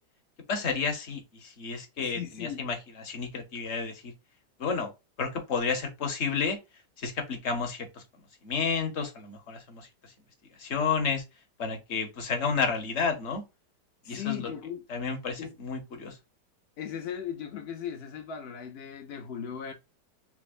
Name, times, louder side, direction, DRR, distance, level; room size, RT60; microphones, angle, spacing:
voice 1, 0.5-4.1 4.6-4.9 5.2-6.6 7.0-8.0 8.4-9.9 10.6-11.2 11.6-13.4 14.1-14.5 14.9-16.2, left 5 dB, 50° left, 0.9 m, -31 dB
voice 2, 2.0-2.6 14.0-14.9 15.4-15.5 16.8-19.7, left 9 dB, 85° left, 0.5 m, -37 dB
5.9 x 2.0 x 2.4 m
omnidirectional pair, 2.0 m